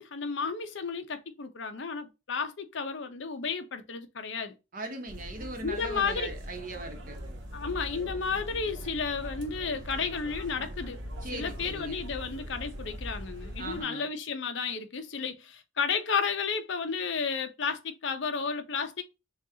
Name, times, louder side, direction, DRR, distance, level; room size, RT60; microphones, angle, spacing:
voice 1, 0.0-4.5 5.6-6.3 7.5-11.0 11.3-19.0, left 5 dB, 55° left, 0.7 m, -32 dB
voice 2, 4.7-7.2 11.2-12.0 13.6-14.1, right 2 dB, 40° right, 0.9 m, -39 dB
sound 1, 5.1-13.8, equal, 60° right, 1.0 m, -41 dB
6.5 x 2.4 x 2.7 m
head